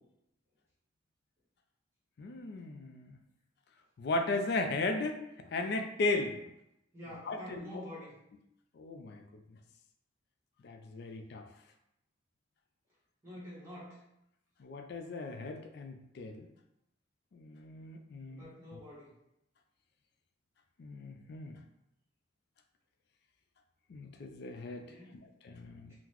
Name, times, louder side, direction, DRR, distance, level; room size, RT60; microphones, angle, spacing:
voice 1, 2.2-3.2 4.0-6.4 7.3-7.8 8.8-9.4 10.6-11.5 14.6-16.5 17.3-18.4 18.7-18.8 20.8-21.6 23.9-24.9 25.4-26.0, left 2 dB, 60° left, 6 dB, 0.3 m, -36 dB
voice 2, 6.9-8.1 13.2-14.0 18.3-19.1 24.8-25.3 25.9-26.0, left 1 dB, 15° right, -9 dB, 1.1 m, -47 dB
3.8 x 2.0 x 2.9 m, 0.83 s
head